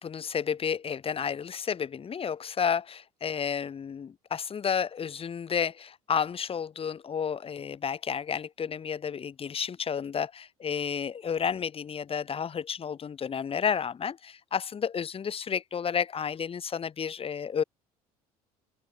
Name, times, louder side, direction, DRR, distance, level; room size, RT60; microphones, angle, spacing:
voice 1, 0.0-17.6, left 7 dB, 30° left, 1.0 m, -31 dB
open air
hypercardioid pair, 60°, 19 cm